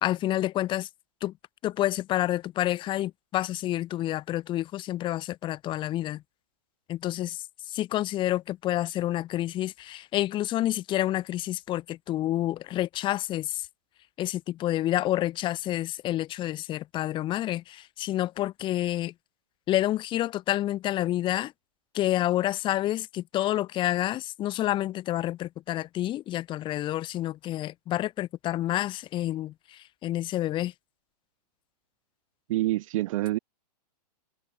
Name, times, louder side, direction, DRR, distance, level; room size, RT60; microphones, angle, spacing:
voice 1, 0.0-0.9 1.2-1.3 1.6-6.2 6.9-7.4 7.7-13.5 14.2-19.1 19.7-21.5 21.9-29.5 30.0-30.7, left 14 dB, 25° left, 1.4 m, -28 dB
voice 2, 32.5-33.4, right 16 dB, 55° right, 3.5 m, -26 dB
hypercardioid pair, 145°, 21 cm